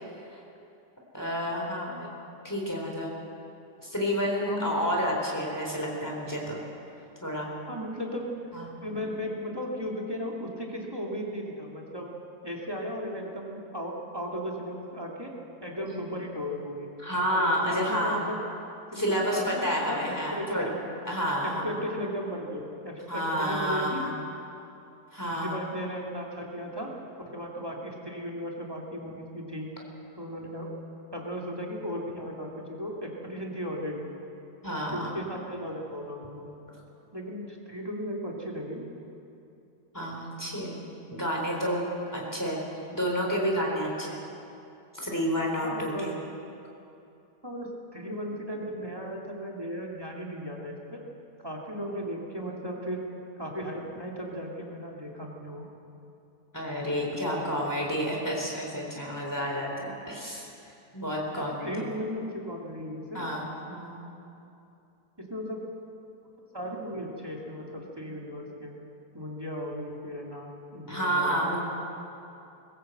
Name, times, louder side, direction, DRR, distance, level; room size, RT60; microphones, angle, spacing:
voice 1, 1.1-2.1 2.4-3.1 3.8-6.6 7.2-7.5 8.5-8.7 15.9-16.0 17.0-18.2 18.9-20.7 21.0-21.6 23.1-24.1 25.1-25.6 34.6-35.1 39.9-40.8 41.1-41.8 42.1-42.6 42.9-44.2 45.0-46.1 56.5-60.5 60.9-61.8 63.1-64.0 70.9-71.6, equal, 10° left, -2 dB, 3.9 m, -30 dB
voice 2, 4.4-4.9 7.7-8.3 8.8-12.1 12.4-15.3 15.6-16.9 17.3-18.4 18.9-19.1 19.3-20.8 21.4-24.1 25.3-26.9 27.2-29.7 30.2-30.7 31.1-34.1 34.9-36.5 37.1-38.9 45.6-46.2 47.4-51.0 51.4-53.0 53.4-55.7 56.8-57.6 61.4-63.3 65.2-65.6 66.5-68.7 69.1-71.6, equal, 15° right, -1 dB, 2.4 m, -36 dB
21.0 x 16.0 x 8.0 m, 2.7 s
omnidirectional pair, 1.8 m